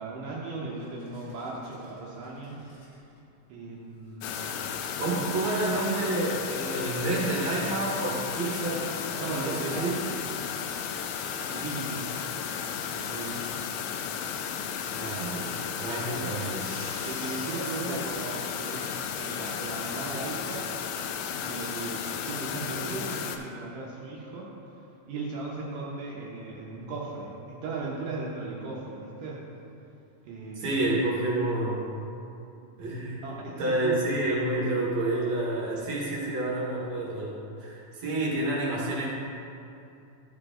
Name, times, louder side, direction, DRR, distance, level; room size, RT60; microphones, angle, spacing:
voice 1, 0.0-2.6 3.5-4.5 5.2-5.5 9.2-10.3 11.4-12.2 12.9-13.5 17.0-20.7 21.4-24.5 25.1-29.4 30.2-30.8 33.2-34.0, right 3 dB, 75° right, -5 dB, 2.5 m, -37 dB
sound 1, 0.7-3.2 3.8-3.9 7.2-11.6 13.2-13.3 13.4-14.5 15.0-19.8, left 2 dB, 55° left, 1.4 m, -51 dB
sound 2, 4.2-23.4, left 7 dB, 85° left, 2.2 m, -34 dB
voice 2, 5.0-9.9 14.9-16.7 17.8-17.9 30.5-31.9 32.8-33.2 33.6-39.1, right 2 dB, 60° right, -5 dB, 2.4 m, -29 dB
13.0 x 4.9 x 3.7 m, 2.7 s
omnidirectional pair, 3.9 m